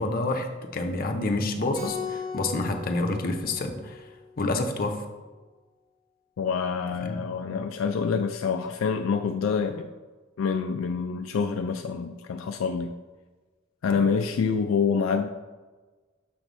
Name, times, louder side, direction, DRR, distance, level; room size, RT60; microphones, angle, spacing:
voice 1, 0.0-4.1 4.4-5.0 7.0-7.2 13.9-14.0, left 2 dB, 45° left, 4 dB, 0.7 m, -28 dB
Keyboard (musical), 1.7-4.4, left 5 dB, 40° right, 1.7 m, -38 dB
voice 2, 6.4-9.9 10.4-12.9 13.8-15.3, left 5 dB, 70° left, 6 dB, 0.3 m, -26 dB
6.9 x 3.1 x 5.2 m, 1.3 s
head